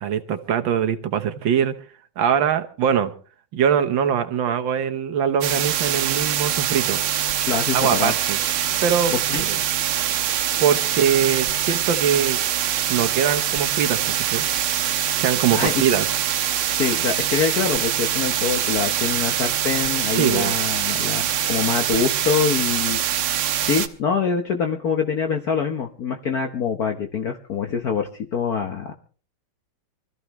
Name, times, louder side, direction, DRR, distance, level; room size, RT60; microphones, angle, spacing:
voice 1, 0.0-1.7 2.2-3.1 3.5-7.0 7.7-8.4 8.8-9.6 10.6-12.4 12.9-14.5 15.2-16.1 20.1-20.6, right 8 dB, 65° right, 8 dB, 1.7 m, -22 dB
sound 1, 5.4-23.9, right 10 dB, 85° right, 1.9 m, -24 dB
voice 2, 7.5-8.1 9.1-9.4 15.5-15.8 16.7-23.0 23.6-28.9, left 6 dB, 50° left, 3 dB, 1.4 m, -25 dB
25.0 x 14.0 x 3.0 m, 0.39 s
omnidirectional pair, 2.3 m